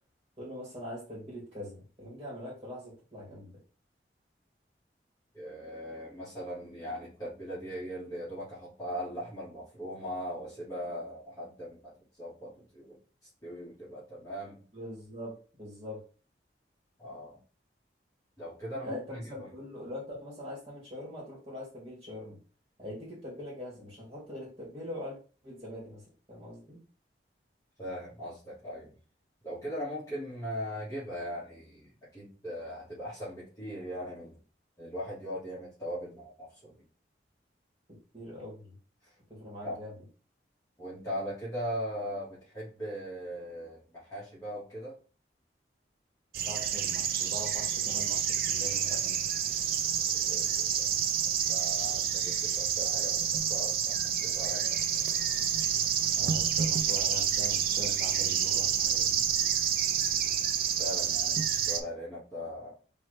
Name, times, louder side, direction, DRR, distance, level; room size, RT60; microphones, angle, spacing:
voice 1, 0.4-3.6 14.7-16.0 18.8-22.4 22.8-25.2 25.4-26.8 38.1-38.8 39.3-39.9 46.4-49.2 56.2-59.2, left 1 dB, 30° right, -6 dB, 2.1 m, -42 dB
voice 2, 5.3-13.0 13.4-14.6 17.0-17.4 18.4-19.5 27.8-28.9 29.4-34.4 34.8-36.7 39.0-39.1 39.6-39.8 40.8-44.9 50.1-50.9 51.5-54.8 60.8-62.7, equal, 20° left, -10 dB, 1.7 m, -39 dB
sound 1, 46.3-61.8, right 8 dB, 55° right, 0.4 m, -29 dB
4.1 x 3.2 x 3.3 m, 0.37 s
head